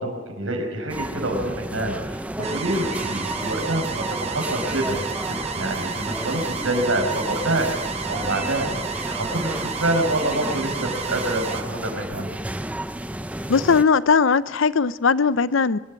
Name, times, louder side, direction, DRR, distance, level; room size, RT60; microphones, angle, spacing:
voice 1, 0.0-7.7 8.1-8.7 9.1-12.3, right 1 dB, 85° right, 5.3 m, -26 dB
sound 1, 0.9-13.8, right 1 dB, 5° right, 0.6 m, -32 dB
sound 2, 2.4-11.6, right 6 dB, 30° right, 1.0 m, -32 dB
voice 2, 13.5-15.8, left 5 dB, 75° left, 0.6 m, -19 dB
24.5 x 12.5 x 8.7 m
head